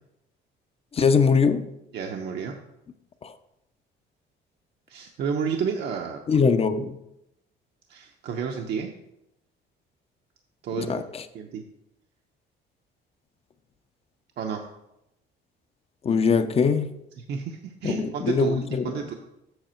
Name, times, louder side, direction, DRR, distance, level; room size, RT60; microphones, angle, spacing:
voice 1, 0.9-1.7 3.2-3.3 6.3-7.0 10.8-11.2 16.0-16.9 17.8-18.8, left 5 dB, 30° left, 0.5 m, -22 dB
voice 2, 1.9-2.6 4.9-6.4 7.9-8.9 10.6-11.0 11.3-11.6 14.4-14.7 17.2-19.1, right 6 dB, 60° right, 0.7 m, -31 dB
7.8 x 6.4 x 4.4 m
cardioid pair, 130°, 20 cm